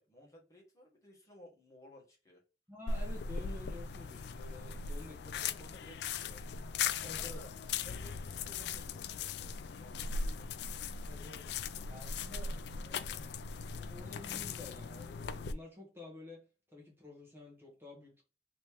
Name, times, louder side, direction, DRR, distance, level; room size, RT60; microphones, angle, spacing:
voice 1, 0.0-2.4 4.7-6.4 7.0-7.5 7.8-10.5, left 1 dB, 20° left, 1.1 m, -56 dB
voice 2, 2.7-5.2 7.0-7.4 9.8-9.9 11.0-11.5 11.8-13.3 13.7-16.4 16.7-18.2, left 2 dB, 15° right, 1.1 m, -51 dB
sound 1, 2.9-15.5, left 5 dB, 65° left, 0.3 m, -39 dB
3.1 x 2.8 x 3.3 m
head